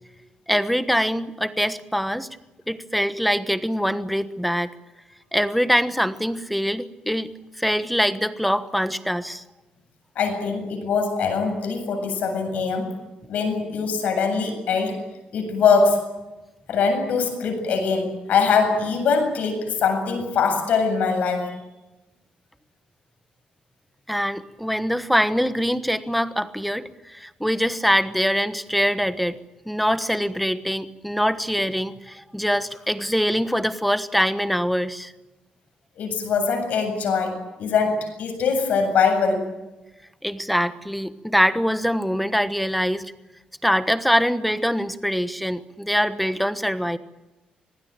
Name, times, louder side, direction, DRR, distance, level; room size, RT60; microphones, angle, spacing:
voice 1, 0.5-2.3 2.7-4.7 5.3-7.3 7.6-9.4 24.1-29.4 29.7-35.1 40.2-43.1 43.6-47.0, equal, ahead, 12 dB, 1.2 m, -23 dB
voice 2, 10.2-12.9 13.3-15.0 15.3-16.0 16.7-21.6 36.0-39.5, left 5 dB, 70° left, 6 dB, 7.7 m, -22 dB
26.0 x 19.5 x 9.0 m, 1.0 s
cardioid pair, 145°, 3 cm